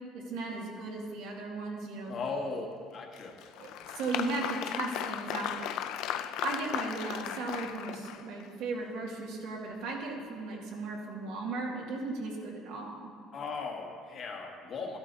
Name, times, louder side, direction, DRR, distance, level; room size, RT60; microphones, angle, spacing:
voice 1, 0.1-2.2 3.6-3.7 3.9-5.7 6.4-13.1, right 3 dB, 80° right, -2 dB, 2.2 m, -36 dB
voice 2, 2.1-2.7 2.9-3.3 3.8-4.2 13.3-15.0, left 4 dB, 35° left, 1 dB, 1.3 m, -38 dB
Applause, 3.1-8.5, left 10 dB, 65° left, 0.4 m, -36 dB
14.0 x 12.0 x 2.8 m, 2.2 s
cardioid pair, 175°, 0 cm